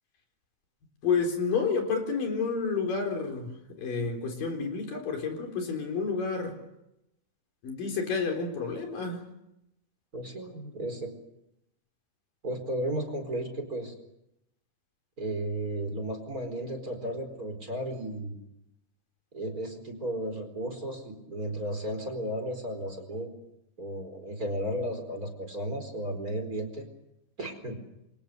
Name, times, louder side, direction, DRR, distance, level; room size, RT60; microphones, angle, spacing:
voice 1, 1.0-6.6 7.6-9.3, left 5 dB, 70° left, 4 dB, 5.7 m, -30 dB
voice 2, 10.1-11.1 12.4-13.9 15.2-18.4 19.3-23.3 23.8-26.9 27.4-27.8, right 1 dB, 25° right, 4 dB, 4.7 m, -34 dB
28.0 x 25.5 x 6.8 m, 0.84 s
omnidirectional pair, 4.1 m